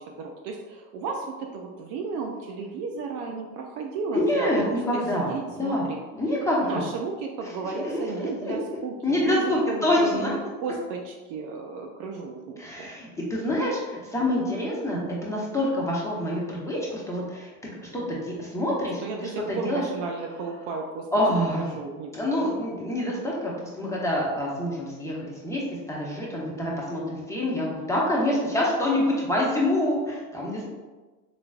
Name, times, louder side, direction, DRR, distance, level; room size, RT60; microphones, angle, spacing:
voice 1, 0.0-6.0 6.6-12.9 19.0-21.1 21.5-22.5, right 4 dB, 50° right, 2 dB, 0.5 m, -34 dB
voice 2, 4.1-5.9 6.1-6.8 7.8-8.5 9.0-10.3 12.6-19.8 21.1-21.7 22.1-30.7, left 1 dB, 5° left, -4 dB, 1.0 m, -26 dB
3.9 x 3.1 x 2.3 m, 1.2 s
hypercardioid pair, 85°, 46 cm